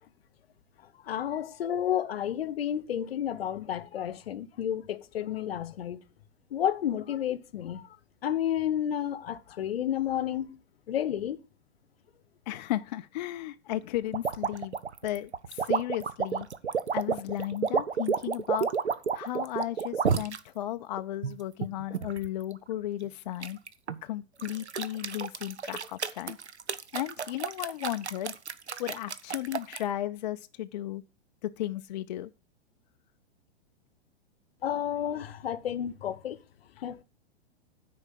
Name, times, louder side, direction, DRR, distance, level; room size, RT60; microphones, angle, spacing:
voice 1, 1.1-6.0 6.5-7.8 8.2-10.6 10.9-11.4 34.6-36.4 36.8-37.0, left 10 dB, 65° left, 0.8 m, -31 dB
voice 2, 12.5-14.8 15.0-16.5 16.9-18.7 19.1-23.6 24.0-26.4 26.9-28.4 28.8-31.0 31.4-32.3 36.8-36.9, left 13 dB, 45° left, 0.4 m, -34 dB
sound 1, 14.1-20.4 21.0-22.3 23.4-24.0 24.4-29.8, right 6 dB, 80° right, 0.8 m, -30 dB
9.7 x 4.7 x 7.5 m
figure-of-eight pair, 110°, 33 cm